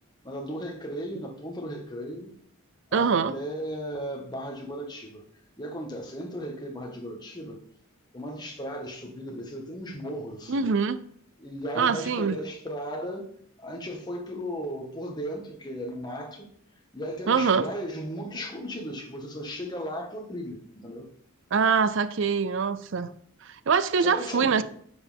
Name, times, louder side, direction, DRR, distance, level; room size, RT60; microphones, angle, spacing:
voice 1, 0.2-2.3 2.9-5.2 5.6-7.6 8.1-10.8 11.4-13.3 13.6-16.5 16.9-21.1 24.0-24.6, equal, 20° left, 1.5 m, -36 dB
voice 2, 2.9-3.4 10.5-11.0 11.8-12.4 17.3-17.7 21.5-23.1 23.5-24.6, right 5 dB, 60° right, 0.5 m, -24 dB
10.5 x 7.9 x 3.5 m
head